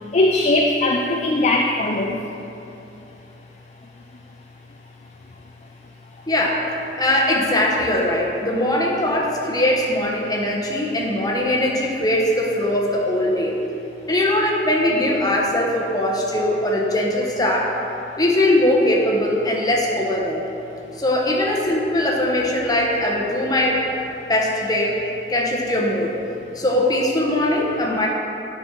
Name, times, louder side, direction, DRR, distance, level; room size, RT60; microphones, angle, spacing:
voice 1, 0.1-2.3, left 2 dB, 40° left, 1 dB, 0.4 m, -19 dB
voice 2, 6.3-13.6 14.1-17.8 18.2-20.4 20.9-23.9 24.3-25.0 25.3-26.1 26.5-28.1, left 1 dB, 20° left, -2 dB, 1.1 m, -21 dB
9.5 x 5.2 x 4.6 m, 2.8 s
head